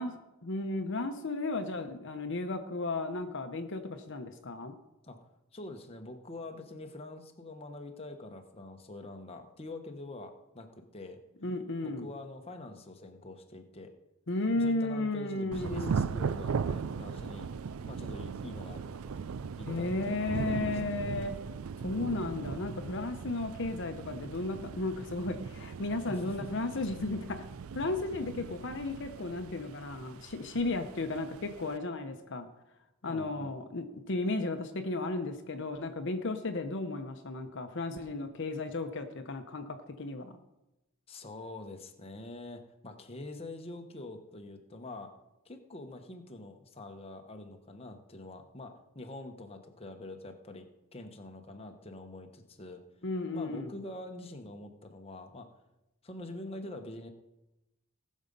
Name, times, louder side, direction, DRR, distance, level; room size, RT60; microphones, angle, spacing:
voice 1, 0.0-4.7 11.4-12.1 14.3-15.9 19.7-21.3 21.8-27.4 27.7-32.5 33.0-40.4 53.0-53.7, left 2 dB, 55° left, 6 dB, 0.8 m, -34 dB
voice 2, 5.5-10.7 10.9-11.2 11.8-13.9 14.5-17.5 17.8-19.3 19.6-20.8 26.1-26.5 33.1-33.5 41.1-45.1 45.4-50.7 50.9-52.8 53.3-55.5 56.0-57.1, left 2 dB, 25° left, 4 dB, 1.0 m, -45 dB
Thunder / Rain, 15.5-31.8, right 5 dB, 70° right, 0.4 m, -38 dB
18.5 x 6.4 x 5.3 m, 0.94 s
head